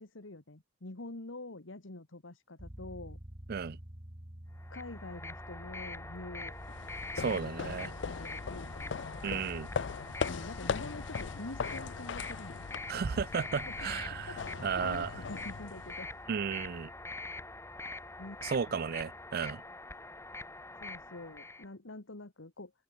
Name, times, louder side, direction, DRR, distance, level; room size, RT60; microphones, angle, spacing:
voice 1, 0.0-3.2 4.7-6.6 7.3-9.0 10.3-12.7 13.7-13.8 14.1-16.1 18.2-18.4 18.7-18.8 20.8-22.7, left 2 dB, 85° left, 1.8 m, -46 dB
sound 1, 2.6-19.3, equal, 30° right, 2.6 m, -51 dB
sound 2, 4.6-21.7, left 2 dB, 15° left, 2.3 m, -45 dB
sound 3, 6.5-16.2, left 6 dB, 65° left, 0.4 m, -40 dB
voice 2, 7.2-7.9 9.2-9.7 12.9-15.1 16.3-16.9 18.4-19.6, right 6 dB, 50° right, 0.4 m, -34 dB
head